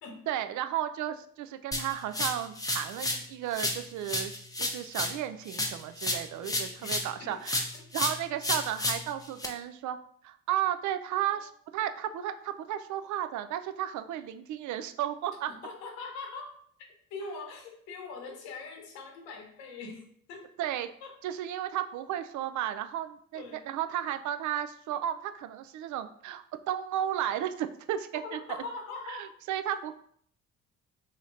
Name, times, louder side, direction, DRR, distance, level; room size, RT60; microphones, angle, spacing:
voice 1, 0.3-7.7 7.9-10.0 10.2-15.5 20.6-20.9 21.2-28.4 29.1-29.9, right 11 dB, 50° right, 10 dB, 0.4 m, -34 dB
sound 1, 1.7-3.3 3.5-7.2 7.5-9.5, left 1 dB, 10° left, 0.7 m, -32 dB
voice 2, 6.4-7.4 7.7-7.8 11.3-11.5 15.5-16.6 17.1-20.5 21.0-21.1 23.3-23.7 28.2-29.3 29.7-29.8, left 3 dB, 80° left, 2 dB, 0.9 m, -42 dB
3.0 x 2.8 x 3.7 m, 0.62 s
hypercardioid pair, 50°, 40 cm